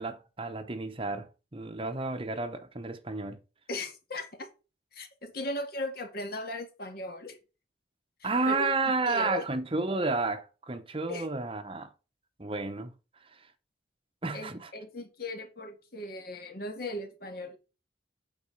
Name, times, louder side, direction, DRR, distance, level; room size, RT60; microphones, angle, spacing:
voice 1, 0.0-3.4 8.2-11.9 12.4-12.9 13.3-13.4 14.2-14.7, right 3 dB, 30° right, 0.9 m, -31 dB
voice 2, 3.7-4.5 4.9-7.4 8.2-9.4 11.1-11.2 14.3-17.6, left 1 dB, 55° left, 1.9 m, -38 dB
8.6 x 4.3 x 6.5 m
head